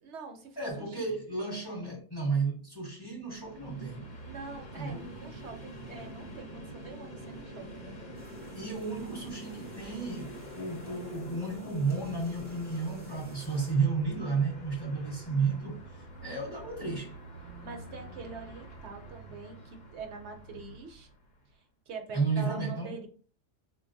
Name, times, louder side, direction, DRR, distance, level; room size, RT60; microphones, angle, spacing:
voice 1, 0.0-1.2 4.2-7.9 17.6-21.1 21.5-23.1, right 4 dB, 70° right, 0.9 m, -45 dB
voice 2, 0.6-4.0 4.8-5.1 8.5-17.2 22.1-22.9, right 4 dB, 20° left, 1.0 m, -32 dB
Train, 3.3-21.4, right 1 dB, 45° left, 0.8 m, -46 dB
sound 1, 8.1-13.7, right 1 dB, 10° right, 0.6 m, -58 dB
4.0 x 2.3 x 2.5 m
omnidirectional pair, 1.2 m